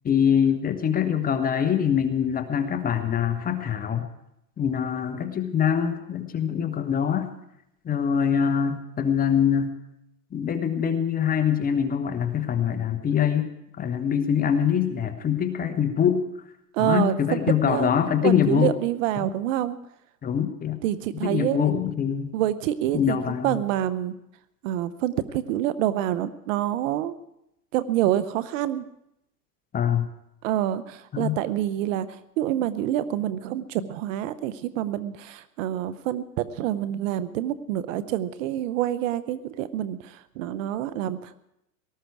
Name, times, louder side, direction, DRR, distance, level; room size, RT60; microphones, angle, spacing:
voice 1, 0.0-4.1 4.6-7.3 7.8-9.7 10.3-13.5 13.8-16.2 16.8-18.7 20.2-20.8 21.2-22.3 22.9-23.6 29.7-30.1 31.1-31.4, left 8 dB, 20° left, 8 dB, 1.2 m, -24 dB
voice 2, 16.7-17.9 18.2-19.8 20.8-21.7 22.3-23.2 23.4-24.1 24.6-27.1 27.7-28.8 30.4-32.1 32.4-41.3, right 12 dB, 55° right, 15 dB, 0.9 m, -27 dB
18.5 x 13.0 x 4.8 m, 0.81 s
hypercardioid pair, 125°, 48 cm